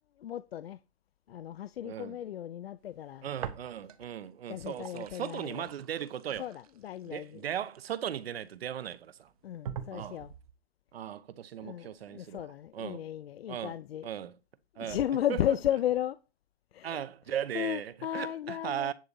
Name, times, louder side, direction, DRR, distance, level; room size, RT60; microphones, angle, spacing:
voice 1, 0.2-0.8 1.3-3.3 4.0-4.1 4.5-5.7 6.4-7.5 9.4-10.3 11.6-14.1 14.7-16.2 16.7-17.0 17.3-18.9, left 11 dB, 65° left, 0.6 m, -35 dB
voice 2, 1.8-2.2 3.2-6.5 7.0-9.3 9.9-10.2 10.9-12.5 12.7-13.0 13.5-13.7 14.0-14.3 14.8-15.0 15.3-15.4 16.8-18.9, right 10 dB, 65° right, 1.0 m, -37 dB
sound 1, 3.4-4.2 4.5-8.4 9.0-9.1 9.6-10.5, right 9 dB, 35° right, 0.7 m, -44 dB
10.5 x 4.0 x 7.0 m
hypercardioid pair, 165°, 32 cm